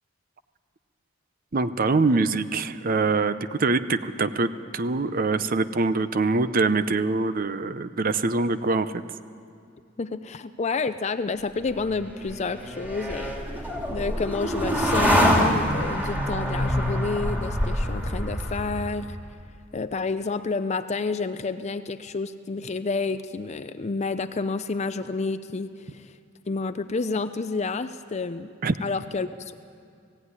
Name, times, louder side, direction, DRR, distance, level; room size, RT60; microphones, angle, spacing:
voice 1, 1.5-8.9 28.6-28.7, right 3 dB, 45° right, 12 dB, 0.7 m, -24 dB
voice 2, 10.0-13.4 13.9-19.2 19.7-26.1 26.5-28.5 28.8-29.5, left 4 dB, 35° left, 10 dB, 0.5 m, -29 dB
sound 1, 11.7-19.1, equal, 10° right, 2.6 m, -26 dB
17.5 x 16.0 x 9.7 m, 2.4 s
head